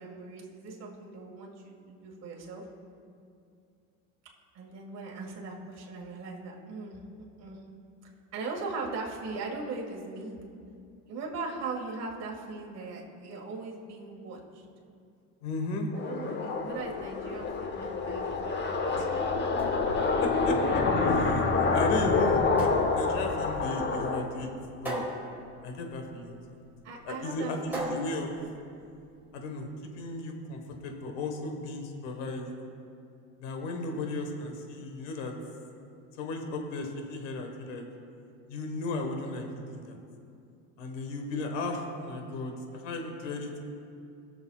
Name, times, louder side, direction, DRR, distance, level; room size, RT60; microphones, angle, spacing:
voice 1, 0.0-2.6 4.5-7.0 7.4-7.6 8.3-10.4 11.1-14.6 15.9-18.6 26.8-27.9, right 3 dB, 45° right, -2 dB, 1.9 m, -39 dB
voice 2, 15.4-15.9 19.0-19.1 20.2-20.8 21.1-24.5 24.8-25.1 25.6-26.3 27.0-28.3 29.3-29.7 29.9-32.5 33.4-35.3 36.2-37.8 38.5-39.4 39.7-40.0 40.8-43.6, left 2 dB, 80° left, 3 dB, 1.4 m, -35 dB
sound 1, 15.9-24.2, left 4 dB, 30° left, 0.9 m, -27 dB
sound 2, 19.3-29.3, right 1 dB, 5° right, 2.4 m, -41 dB
20.5 x 6.9 x 2.4 m, 2.4 s
supercardioid pair, 110°, 36 cm